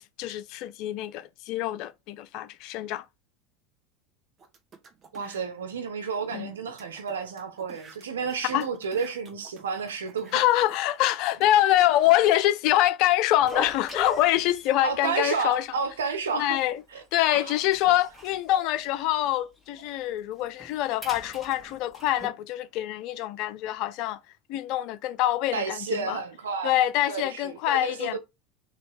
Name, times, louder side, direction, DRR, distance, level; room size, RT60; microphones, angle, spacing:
voice 1, 0.0-3.0 6.3-6.5 8.5-8.7 10.3-15.7 16.4-16.8 17.1-24.2 24.5-26.2 26.6-28.2, left 14 dB, 60° left, 0.5 m, -25 dB
sound 1, 4.4-5.4 6.0-6.1 6.3-6.4 6.8-12.1, right 5 dB, 35° right, 1.2 m, -52 dB
voice 2, 5.1-10.4 14.8-17.5 25.5-26.7 27.1-28.2, right 5 dB, 90° right, 0.9 m, -31 dB
sound 2, 13.4-15.0 15.3-15.5 15.8-15.9 16.5-17.0 17.3-19.4 19.7-19.9 20.3-22.3, left 2 dB, 10° left, 1.9 m, -40 dB
3.3 x 2.9 x 4.7 m
hypercardioid pair, 90°, 0 cm